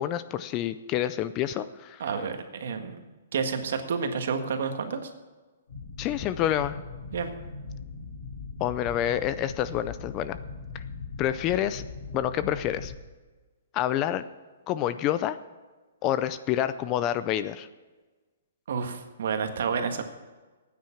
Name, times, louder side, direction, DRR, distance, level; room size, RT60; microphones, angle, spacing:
voice 1, 0.0-2.0 6.0-6.8 8.6-10.4 10.7-10.8 11.2-11.8 12.1-12.9 13.7-14.2 14.7-15.4 16.0-17.7, left 11 dB, 20° left, 13 dB, 0.4 m, -28 dB
voice 2, 2.0-3.0 3.3-5.1 7.1-7.3 18.7-20.0, right 5 dB, 60° right, 6 dB, 1.6 m, -30 dB
sound 1, 5.7-12.9, left 4 dB, 70° left, 4.1 m, -40 dB
14.5 x 9.4 x 5.8 m, 1.3 s
hypercardioid pair, 170°, 0 cm